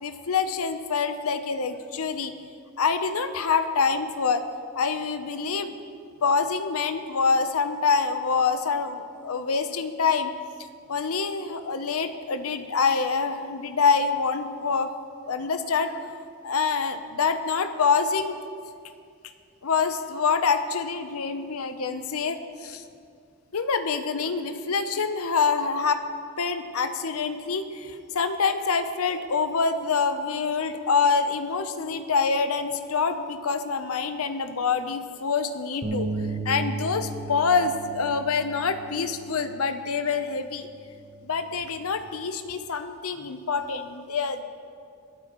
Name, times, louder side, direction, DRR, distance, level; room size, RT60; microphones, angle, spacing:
voice 1, 0.0-2.3 2.8-4.4 4.7-5.7 6.2-10.3 10.9-14.9 15.3-16.1 16.4-18.3 19.6-22.8 23.5-26.0 26.4-36.1 36.4-40.7 41.2-44.4, left 5 dB, 75° left, 9 dB, 0.7 m, -26 dB
sound 1, 35.8-42.1, right 3 dB, 30° right, 0.8 m, -36 dB
22.0 x 8.5 x 3.0 m, 2.3 s
head